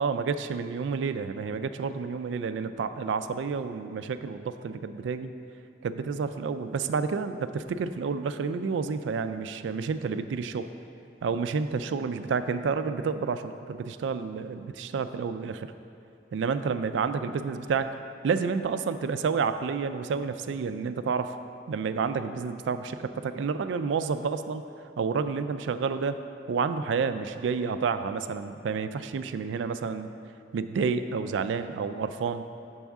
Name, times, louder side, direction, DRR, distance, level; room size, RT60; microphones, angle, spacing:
voice 1, 0.0-5.3 5.8-10.7 11.2-15.7 16.3-17.9 18.2-21.4 21.7-24.6 25.0-26.2 26.5-30.1 30.5-32.5, right 5 dB, 80° right, 10 dB, 0.3 m, -30 dB
7.1 x 6.3 x 3.5 m, 2.5 s
head